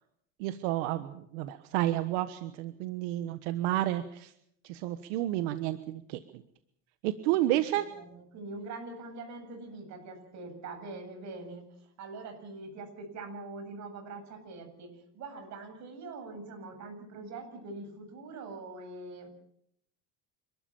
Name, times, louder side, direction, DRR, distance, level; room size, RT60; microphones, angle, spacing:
voice 1, 0.4-4.3 4.6-6.4 7.0-7.8, right 14 dB, 90° right, 11 dB, 1.4 m, -31 dB
voice 2, 7.2-7.7 7.9-11.7 12.0-19.3, right 3 dB, 50° right, 6 dB, 7.9 m, -43 dB
28.0 x 13.5 x 8.9 m, 0.72 s
cardioid pair, 135°, 35 cm